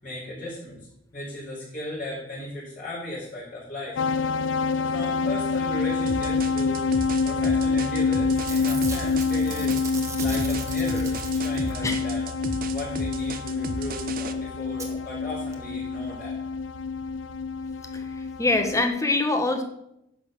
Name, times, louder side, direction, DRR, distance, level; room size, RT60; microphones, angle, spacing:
voice 1, 0.0-0.9 1.1-4.0 4.8-9.8 10.2-12.2 12.7-16.4, left 1 dB, 45° left, -8 dB, 4.3 m, -36 dB
sound 1, 4.0-18.8, left 4 dB, 75° left, 0.5 m, -27 dB
sound 2, 6.1-14.3, right 4 dB, 50° right, 0.8 m, -35 dB
Packing tape duct tape / Tearing, 7.8-8.0 8.3-11.9 13.8-13.9 14.1-14.2 14.8-14.9 15.5-15.6 15.8-15.9, right 4 dB, 15° right, 1.4 m, -38 dB
voice 2, 17.9-19.6, left 2 dB, 15° left, 5 dB, 1.2 m, -24 dB
10.5 x 6.5 x 6.4 m, 0.80 s
head